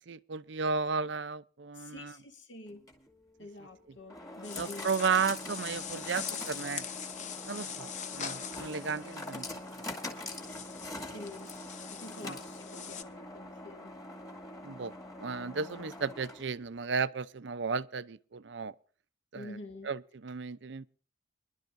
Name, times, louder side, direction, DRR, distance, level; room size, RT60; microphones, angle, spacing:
voice 1, 0.1-2.1 4.6-6.8 7.5-9.5 10.6-10.7 11.1-11.2 12.2-12.3 14.6-14.9 15.2-18.7 19.3-19.6 19.8-20.9, right 5 dB, 60° right, 0.6 m, -34 dB
voice 2, 1.7-2.9 3.4-4.9 11.0-11.6 11.9-13.9 19.3-19.9, left 2 dB, 65° left, 2.6 m, -47 dB
sound 1, 2.7-16.7, left 1 dB, 20° left, 2.2 m, -44 dB
sound 2, 4.4-13.0, left 7 dB, 40° left, 0.9 m, -43 dB
25.0 x 11.5 x 2.6 m
head